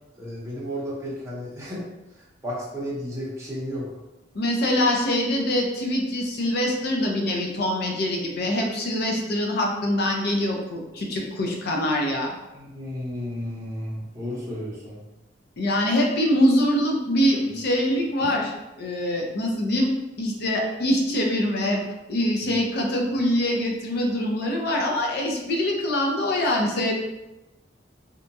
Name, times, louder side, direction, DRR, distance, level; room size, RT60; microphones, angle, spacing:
voice 1, 0.2-1.8 2.4-3.9 12.5-15.0, equal, 15° right, -7 dB, 0.7 m, -33 dB
voice 2, 4.3-12.3 15.6-19.9 20.2-21.8 22.1-26.9, left 1 dB, 60° left, 0 dB, 0.5 m, -24 dB
2.8 x 2.2 x 2.6 m, 0.99 s
head